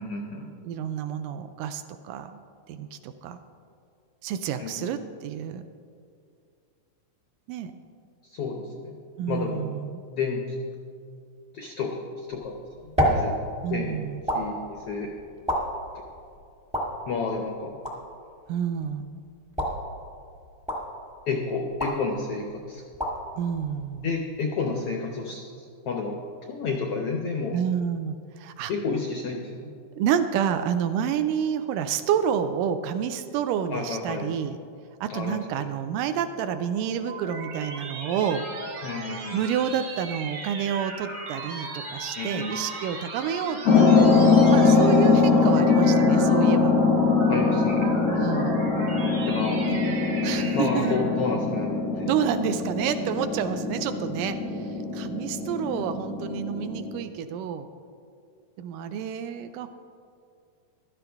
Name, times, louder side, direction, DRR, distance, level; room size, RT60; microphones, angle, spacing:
voice 1, 0.0-0.5 4.6-4.9 8.2-9.0 9.3-9.6 10.1-10.4 11.5-13.3 13.7-14.0 14.3-15.1 17.1-17.7 21.3-22.8 24.0-26.2 26.5-27.6 28.7-29.7 33.7-34.3 35.1-35.6 38.8-39.5 42.1-42.6 47.3-47.9 49.3-49.6 50.5-52.1 54.4-54.6, left 4 dB, 85° left, 2 dB, 1.3 m, -31 dB
voice 2, 0.6-2.4 2.7-3.4 4.2-5.6 7.5-7.7 9.2-10.0 13.6-14.2 18.5-19.2 23.4-24.1 27.5-28.7 30.0-34.6 35.0-38.5 39.3-44.1 44.5-46.7 48.1-48.7 49.7-50.0 50.2-51.0 52.0-57.7 58.6-59.7, right 8 dB, 80° right, 9 dB, 2.0 m, -29 dB
sound 1, 12.3-24.5, equal, 10° right, 0.4 m, -32 dB
sound 2, 36.6-51.2, right 2 dB, 50° right, 1.6 m, -37 dB
sound 3, 43.6-57.0, left 4 dB, 60° left, 0.8 m, -22 dB
15.0 x 12.0 x 3.5 m, 2.3 s
omnidirectional pair, 3.9 m